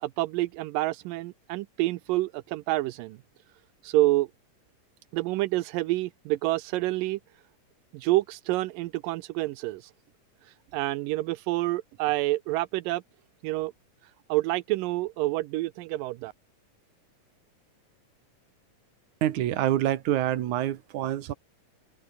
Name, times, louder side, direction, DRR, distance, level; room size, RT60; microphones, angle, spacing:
voice 1, 0.0-3.2 3.8-4.3 5.1-7.2 7.9-9.9 10.7-13.0 13.4-13.7 14.3-16.3, right 18 dB, 85° right, 2.4 m, -28 dB
voice 2, 19.2-21.3, right 12 dB, 70° right, 2.7 m, -26 dB
open air
omnidirectional pair, 3.8 m